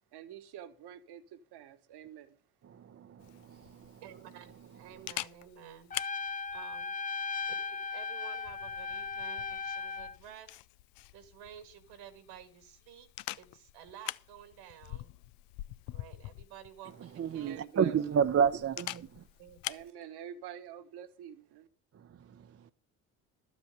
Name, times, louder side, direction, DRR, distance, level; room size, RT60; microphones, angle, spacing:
voice 1, 0.1-2.4 17.4-18.2 19.7-21.7, right 10 dB, 65° right, 1.6 m, -47 dB
voice 2, 2.7-4.0 17.0-19.2 21.9-22.7, right 7 dB, 35° right, 0.7 m, -31 dB
Camera, 3.2-19.9, left 18 dB, 75° left, 0.6 m, -46 dB
voice 3, 4.0-5.9 6.5-10.6 11.1-13.1 13.4-15.1 15.9-17.6 19.4-19.6, right 9 dB, 80° right, 2.3 m, -52 dB
Trumpet, 5.9-10.2, left 5 dB, 20° left, 0.6 m, -37 dB
12.5 x 8.1 x 6.8 m
hypercardioid pair, 60°, 42 cm